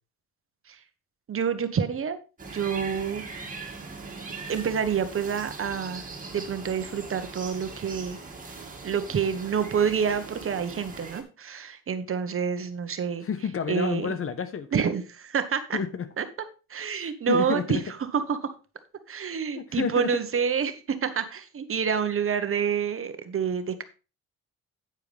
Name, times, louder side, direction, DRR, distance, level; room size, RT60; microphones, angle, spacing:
voice 1, 1.3-2.2 2.5-3.2 4.5-8.2 8.8-13.3 13.7-14.1 14.7-15.8 16.2-16.3 16.7-17.8 18.1-18.5 19.1-23.8, right 7 dB, 45° right, 1.3 m, -28 dB
sound 1, 2.4-11.2, right 4 dB, 25° right, 2.5 m, -40 dB
voice 2, 13.2-14.8 15.7-16.1 17.0-17.8 19.5-20.2, left 6 dB, 45° left, 1.2 m, -30 dB
9.2 x 9.1 x 3.5 m
cardioid pair, 90°, 30 cm